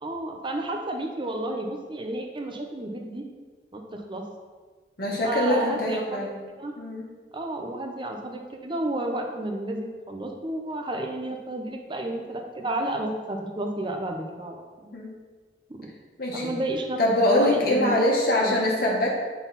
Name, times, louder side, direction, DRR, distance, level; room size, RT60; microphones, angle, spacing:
voice 1, 0.0-3.2 3.7-4.2 5.2-6.3 6.6-6.7 7.3-14.6 15.7-15.9 16.3-17.9 18.4-18.6, right 1 dB, 30° right, 3 dB, 0.8 m, -31 dB
voice 2, 5.0-6.3 6.8-7.1 14.9-15.2 16.2-16.5 17.0-19.1, left 1 dB, 55° left, -2 dB, 1.4 m, -23 dB
8.7 x 4.1 x 4.1 m, 1.4 s
head